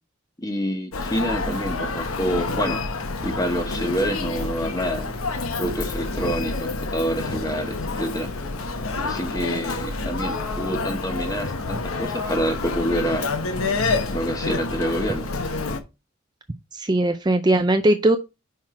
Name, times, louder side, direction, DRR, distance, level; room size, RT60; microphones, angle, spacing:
voice 1, 0.4-2.8 3.2-5.1 5.6-8.3 9.0-13.3 14.1-15.3, equal, 15° left, 1.1 m, -27 dB
Human voice, 0.9-15.8, left 3 dB, 85° left, 1.0 m, -28 dB
voice 2, 16.7-18.2, right 1 dB, 20° right, 0.4 m, -19 dB
5.8 x 4.5 x 4.8 m
head